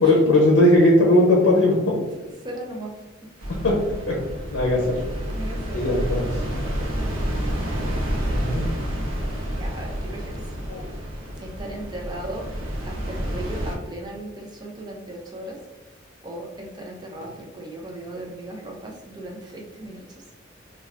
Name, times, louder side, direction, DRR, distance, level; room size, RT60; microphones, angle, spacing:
voice 1, 0.0-1.9 3.6-3.8 4.1-4.2 4.5-5.0 5.7-6.3 8.3-8.7 10.7-10.8, left 1 dB, 85° left, -2 dB, 0.6 m, -18 dB
voice 2, 2.2-2.9 5.3-6.0 7.1-8.4 9.5-10.5 11.4-12.5 12.8-15.6 16.2-20.3, right 1 dB, 20° right, 0 dB, 0.4 m, -37 dB
sound 1, 3.4-13.8, equal, 85° right, 0.6 m, -29 dB
2.3 x 2.3 x 3.3 m, 1.1 s
head